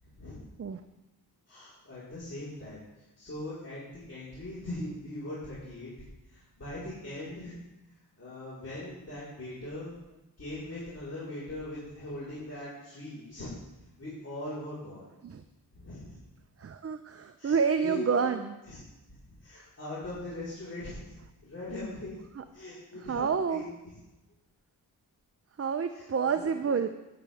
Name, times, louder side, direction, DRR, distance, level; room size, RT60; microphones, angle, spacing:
voice 1, 0.0-0.4 1.5-5.9 6.3-7.6 8.2-9.9 10.4-13.6 14.0-15.1 15.7-16.2 17.4-17.6 17.8-18.3 18.7-18.8 19.3-21.2 21.4-22.2 22.5-23.7 25.9-26.1 26.3-26.8, left 1 dB, 35° left, -10 dB, 4.5 m, -40 dB
voice 2, 16.6-18.6 22.4-22.5 22.9-23.6 25.6-26.9, right 6 dB, 35° right, 9 dB, 0.6 m, -29 dB
15.5 x 8.7 x 3.5 m, 0.99 s
cardioid pair, 65°, 42 cm